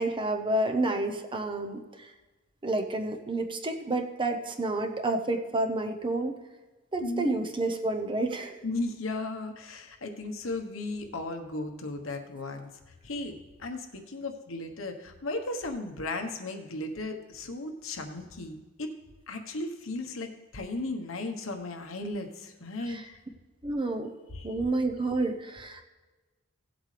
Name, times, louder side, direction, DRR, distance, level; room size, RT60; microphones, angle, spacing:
voice 1, 0.0-2.1 2.6-6.3 6.9-8.6 22.9-23.0 23.6-24.1 24.4-25.8, right 2 dB, 25° right, 5 dB, 0.8 m, -29 dB
voice 2, 7.0-7.4 8.6-12.7 13.0-18.9 19.3-23.2 24.3-24.5, left 2 dB, 75° left, 5 dB, 1.2 m, -36 dB
16.5 x 8.0 x 3.3 m, 1.2 s
head